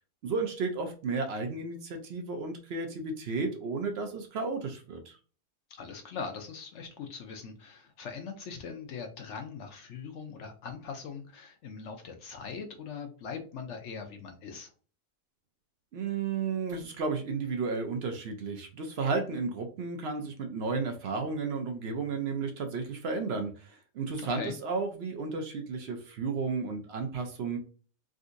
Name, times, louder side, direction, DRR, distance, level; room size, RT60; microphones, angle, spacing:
voice 1, 0.2-5.2 15.9-27.6, right 4 dB, 65° right, 5 dB, 0.6 m, -33 dB
voice 2, 5.7-14.7 24.3-24.6, left 5 dB, 65° left, 5 dB, 0.8 m, -41 dB
3.7 x 2.6 x 2.5 m, 0.39 s
omnidirectional pair, 1.6 m